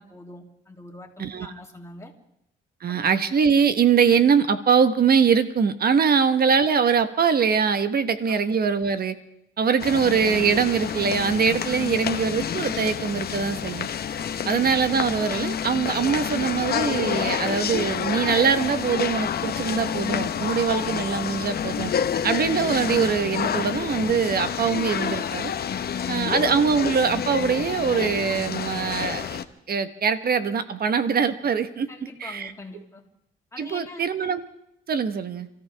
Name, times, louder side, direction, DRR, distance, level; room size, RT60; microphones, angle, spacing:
voice 1, 0.0-2.1 8.3-8.4 11.8-12.0 14.3-14.5 25.3-26.4 31.9-33.0 33.5-34.1, left 2 dB, 15° left, 0 dB, 3.0 m, -43 dB
voice 2, 2.8-9.1 9.6-13.9 14.5-21.9 22.2-25.5 26.1-29.4 29.7-31.9 32.2-32.5 33.6-34.4 34.9-35.5, right 6 dB, 50° right, 10 dB, 1.3 m, -22 dB
sound 1, 9.8-29.4, left 8 dB, 50° left, 1.0 m, -28 dB
28.5 x 14.0 x 3.5 m, 0.80 s
cardioid pair, 90°, 20 cm